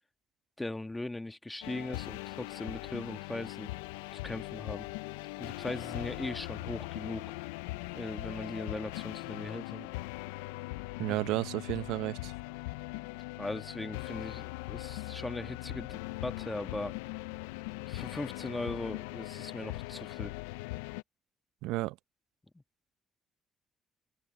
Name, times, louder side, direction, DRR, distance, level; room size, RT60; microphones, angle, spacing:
voice 1, 0.6-3.7 4.2-4.9 5.4-7.3 7.9-9.9 13.4-17.0 17.9-20.3 22.5-22.6, left 2 dB, 15° left, 2.1 m, -39 dB
sound 1, 1.6-21.0, left 22 dB, 80° left, 1.0 m, -40 dB
voice 2, 11.0-12.3 21.6-22.0, right 19 dB, 75° right, 1.0 m, -32 dB
hypercardioid pair, 45°, 0 cm